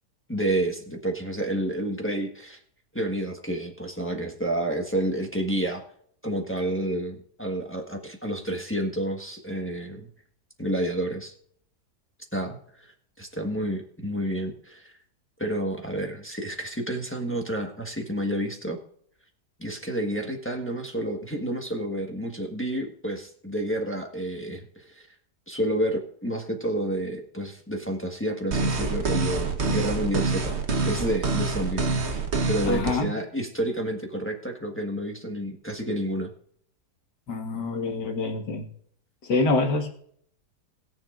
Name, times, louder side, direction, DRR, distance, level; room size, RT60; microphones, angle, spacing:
voice 1, 0.3-2.6 2.9-5.8 6.2-10.1 10.6-11.3 12.3-14.9 15.4-18.8 19.6-25.1 25.5-32.2 32.5-36.3, right 1 dB, 10° left, 2 dB, 1.2 m, -30 dB
sound 1, 28.5-32.9, right 4 dB, 45° right, 1.3 m, -26 dB
voice 2, 32.6-33.1 37.3-38.6 39.3-39.9, left 3 dB, 80° left, 3 dB, 2.4 m, -26 dB
21.0 x 7.3 x 2.5 m, 0.64 s
omnidirectional pair, 1.8 m